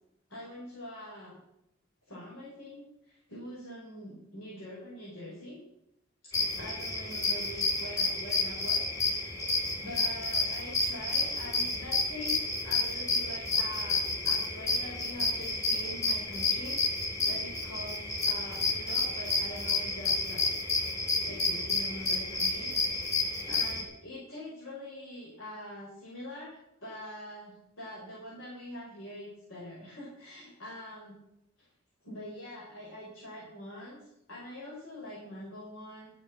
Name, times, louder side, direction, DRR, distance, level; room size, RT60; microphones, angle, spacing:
voice 1, 0.3-1.4 2.1-5.6 6.2-9.4 9.8-20.4 21.2-22.7 23.5-31.2 31.6-31.7 32.0-36.1, left 1 dB, 90° left, -6 dB, 5.2 m, -44 dB
sound 1, 6.3-23.8, left 3 dB, 20° left, 2.7 m, -30 dB
13.0 x 9.5 x 6.1 m, 0.81 s
head